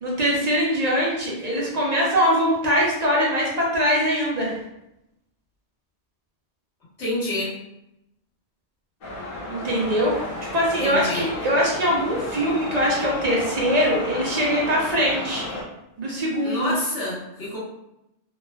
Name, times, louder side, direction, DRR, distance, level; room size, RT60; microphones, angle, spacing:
voice 1, 0.0-4.5 9.5-10.2 10.5-15.4 16.0-16.7, equal, 45° right, -4 dB, 0.6 m, -22 dB
voice 2, 7.0-7.5 10.8-11.3 16.4-17.6, left 1 dB, 90° left, -8 dB, 1.4 m, -28 dB
sound 1, 9.0-15.6, left 1 dB, 60° left, 0.8 m, -32 dB
3.1 x 2.1 x 2.2 m, 0.86 s
omnidirectional pair, 1.1 m